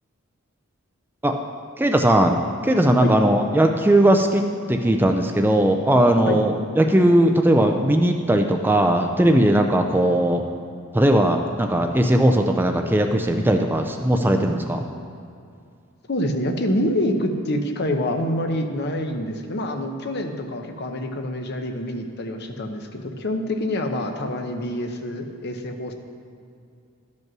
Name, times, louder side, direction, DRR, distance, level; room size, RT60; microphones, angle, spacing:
voice 1, 1.8-2.4 2.6-4.4 4.7-10.4 10.9-14.8, right 1 dB, 10° right, 4 dB, 0.4 m, -18 dB
voice 2, 16.1-25.9, left 1 dB, 50° left, 5 dB, 0.8 m, -26 dB
12.5 x 5.3 x 6.0 m, 2.4 s
head